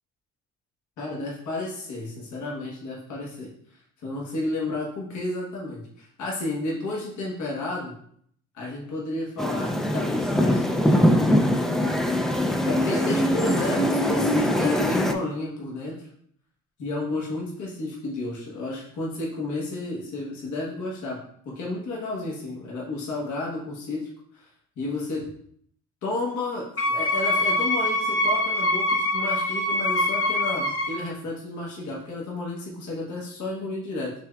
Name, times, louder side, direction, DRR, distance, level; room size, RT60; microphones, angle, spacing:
voice 1, 1.0-3.5 4.0-7.9 8.5-11.6 12.6-16.0 16.8-24.5 24.8-25.3 26.0-34.1, left 2 dB, 75° left, -4 dB, 1.3 m, -32 dB
sound 1, 9.4-15.1, equal, ahead, 0.3 m, -22 dB
Wind instrument woodwind instrument, 26.8-31.1, left 1 dB, 45° left, 0.9 m, -24 dB
5.9 x 3.3 x 2.3 m, 0.65 s
cardioid pair, 90°, 30 cm